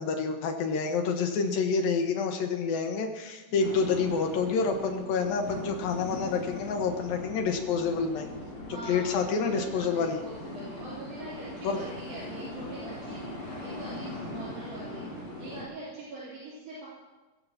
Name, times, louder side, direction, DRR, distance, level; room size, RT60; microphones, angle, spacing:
voice 1, 0.0-8.3 8.9-10.2 11.6-11.8, left 5 dB, 75° left, 4 dB, 3.1 m, -28 dB
sound 1, 3.6-15.6, left 1 dB, 35° left, 4.1 m, -40 dB
voice 2, 8.7-16.9, right 2 dB, 70° right, -9 dB, 5.5 m, -43 dB
20.5 x 15.5 x 3.0 m, 1.2 s
omnidirectional pair, 4.3 m